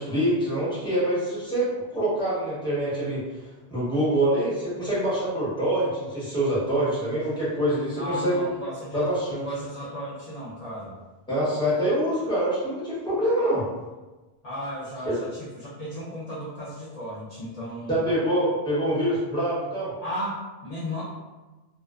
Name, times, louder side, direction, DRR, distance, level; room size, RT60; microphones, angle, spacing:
voice 1, 0.0-8.5 8.9-9.4 11.3-13.7 17.9-19.9, right 1 dB, 5° left, -10 dB, 0.8 m, -25 dB
voice 2, 8.0-11.0 14.4-18.0 20.0-21.0, equal, 50° left, -8 dB, 0.5 m, -35 dB
2.5 x 2.1 x 2.3 m, 1.2 s
omnidirectional pair, 1.1 m